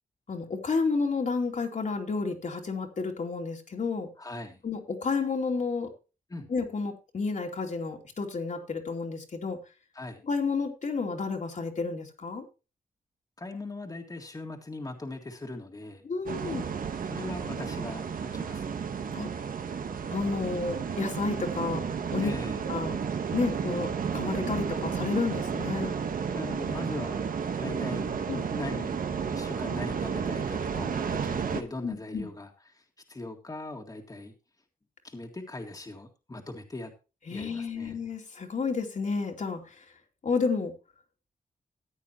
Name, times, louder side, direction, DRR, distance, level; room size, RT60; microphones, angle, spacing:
voice 1, 0.3-4.1 4.6-5.9 6.5-9.6 10.2-12.4 16.0-16.7 19.1-19.3 20.1-21.8 22.1-22.3 22.7-23.0 23.3-25.9 28.3-28.5 31.8-32.3 37.3-39.8 40.2-40.7, left 4 dB, 60° left, 2 dB, 2.6 m, -31 dB
voice 2, 4.2-4.6 6.3-6.5 9.9-10.2 13.4-16.0 17.1-18.1 18.3-18.8 22.2-22.6 26.3-27.2 27.6-29.0 29.3-32.8 33.1-34.3 35.0-36.9 37.3-38.0, left 2 dB, 25° left, 3 dB, 1.9 m, -40 dB
sound 1, 16.3-31.6, right 6 dB, 75° right, 1.2 m, -32 dB
14.5 x 9.3 x 3.0 m, 0.31 s
cardioid pair, 85°, 14 cm